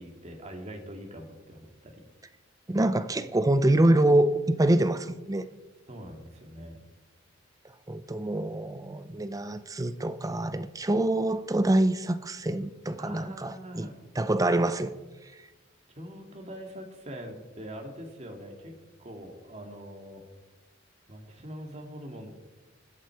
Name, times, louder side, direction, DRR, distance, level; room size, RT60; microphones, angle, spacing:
voice 1, 0.0-2.0 5.9-6.8 13.0-14.0 15.9-20.2 21.1-22.3, equal, 35° right, 2.1 m, -43 dB
voice 2, 2.7-5.5 7.9-13.9 14.2-14.9, right 1 dB, 20° right, 0.5 m, -25 dB
23.0 x 7.7 x 4.7 m
head